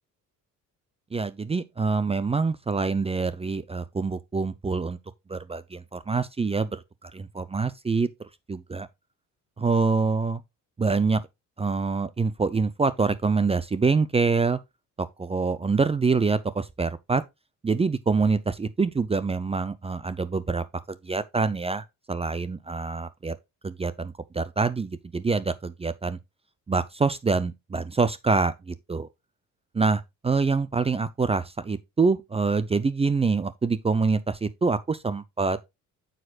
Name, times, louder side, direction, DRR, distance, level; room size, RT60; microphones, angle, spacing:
voice 1, 1.1-5.0 5.3-8.1 8.5-8.9 9.6-10.4 10.8-11.2 11.6-14.6 15.0-17.2 17.6-23.4 23.6-26.2 26.7-29.1 29.7-35.6, right 4 dB, 20° right, 0.5 m, -25 dB
9.1 x 6.6 x 2.4 m
cardioid pair, 105°, 33 cm